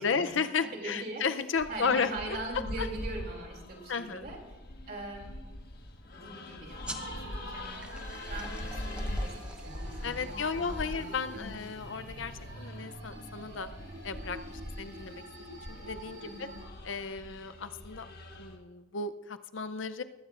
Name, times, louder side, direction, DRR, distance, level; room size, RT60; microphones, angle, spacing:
voice 1, 0.0-2.1 2.8-2.9 3.9-4.3 10.0-13.7 14.0-15.2 15.5-16.3 16.8-18.1 18.4-20.0, left 5 dB, 80° left, 11 dB, 0.6 m, -34 dB
voice 2, 0.6-1.2 1.7-4.4 4.9-5.3 6.1-7.8 8.3-11.6 16.2-16.6, right 2 dB, 50° right, 1 dB, 2.9 m, -42 dB
sound 1, 1.6-18.6, left 1 dB, 55° left, 1.5 m, -42 dB
sound 2, 6.8-11.9, right 1 dB, 5° right, 0.9 m, -48 dB
sound 3, 7.0-16.7, right 2 dB, 90° right, 3.9 m, -47 dB
20.0 x 15.5 x 2.5 m, 1.1 s
head